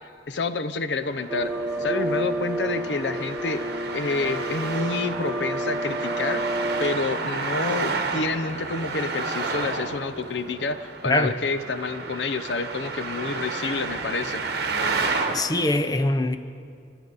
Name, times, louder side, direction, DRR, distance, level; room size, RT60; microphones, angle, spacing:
voice 1, 0.3-1.5 1.8-3.7 3.9-14.5, left 3 dB, 85° left, 0.7 m, -28 dB
Traffic noise roadway noise, 1.0-15.4, right 4 dB, 65° right, 1.3 m, -31 dB
sound 1, 1.3-7.0, right 1 dB, 15° right, 1.2 m, -30 dB
voice 2, 15.3-16.4, left 2 dB, 20° left, 0.5 m, -23 dB
28.0 x 10.0 x 4.1 m
head